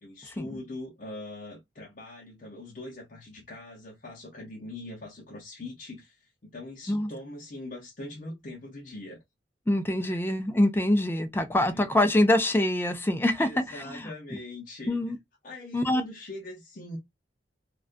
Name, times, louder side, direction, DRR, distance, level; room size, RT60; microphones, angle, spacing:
voice 1, 0.0-6.2 6.4-9.2 10.0-10.2 11.7-11.9 13.4-15.0 15.4-17.0, left 2 dB, 45° left, 0.7 m, -42 dB
voice 2, 9.7-14.1 14.9-15.2 15.7-16.0, left 1 dB, 15° left, 0.4 m, -25 dB
2.3 x 2.3 x 2.4 m
head